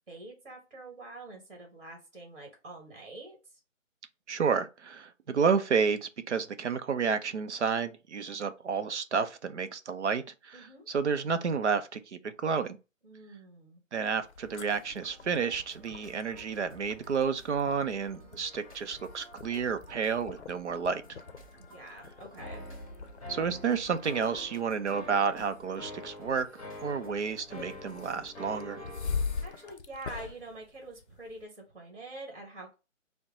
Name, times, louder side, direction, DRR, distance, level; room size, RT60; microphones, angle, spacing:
voice 1, 0.1-3.6 10.5-10.9 13.0-13.8 18.2-18.4 21.6-22.7 29.4-32.7, right 2 dB, 45° right, 1.5 m, -46 dB
voice 2, 4.3-10.6 10.9-12.8 13.9-21.2 23.3-28.8, right 6 dB, 60° right, 0.6 m, -30 dB
sound 1, 14.2-31.4, left 5 dB, 60° left, 0.6 m, -43 dB
sound 2, 14.4-29.7, right 1 dB, 25° right, 0.9 m, -55 dB
sound 3, 22.4-29.2, left 1 dB, 30° left, 0.8 m, -45 dB
4.3 x 2.2 x 3.6 m
hypercardioid pair, 175°, 39 cm